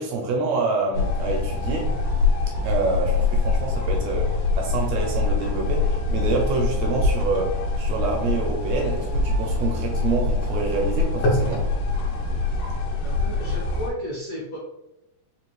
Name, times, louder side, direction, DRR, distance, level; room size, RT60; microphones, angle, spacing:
voice 1, 0.0-1.9 2.6-11.7, right 3 dB, 80° right, 0 dB, 1.6 m, -27 dB
sound 1, 0.6-10.6, left 5 dB, 70° left, 1.7 m, -49 dB
sound 2, 0.9-13.9, left 3 dB, 85° left, 2.4 m, -24 dB
voice 2, 13.0-14.6, equal, 55° left, -9 dB, 1.0 m, -33 dB
5.1 x 2.5 x 3.1 m, 0.84 s
omnidirectional pair, 3.6 m